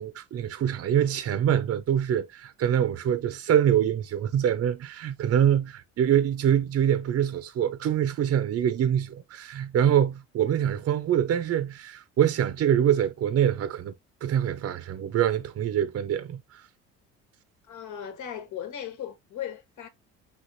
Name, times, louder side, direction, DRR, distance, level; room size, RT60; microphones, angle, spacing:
voice 1, 0.0-13.9 14.2-16.6, right 10 dB, 45° right, 0.7 m, -25 dB
voice 2, 17.7-19.9, left 9 dB, 60° left, 1.4 m, -37 dB
5.7 x 3.2 x 2.6 m
supercardioid pair, 75°, 34 cm